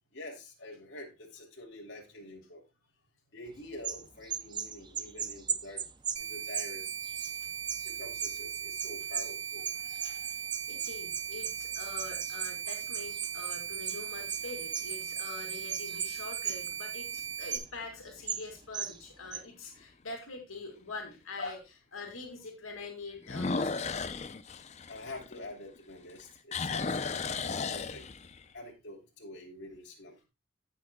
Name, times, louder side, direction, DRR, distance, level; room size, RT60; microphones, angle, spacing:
voice 1, 0.1-2.6 3.3-5.8 6.2-6.9 7.8-9.7 14.4-14.5 15.9-16.0 21.4-21.5 24.9-28.0 28.5-30.2, left 2 dB, 55° left, -1 dB, 3.0 m, -46 dB
sound 1, 3.8-9.3 9.6-16.8 17.1-17.2 17.5-17.7 18.3-18.5 18.7-19.0 19.3-19.4, right 7 dB, 20° right, 0.5 m, -37 dB
sound 2, 6.2-17.6, right 8 dB, 55° right, 1.1 m, -39 dB
sound 3, 9.6-10.3 10.9-11.0 16.2-16.7 17.2-17.3 17.8-17.9 18.2-18.3 19.8-19.9 23.2-25.8 26.1-28.5, left 4 dB, 35° left, 0.5 m, -35 dB
voice 2, 10.7-21.6 21.9-24.1 24.8-24.9 27.3-27.4, left 3 dB, 90° left, 3 dB, 2.4 m, -44 dB
16.5 x 6.1 x 2.3 m, 0.27 s
head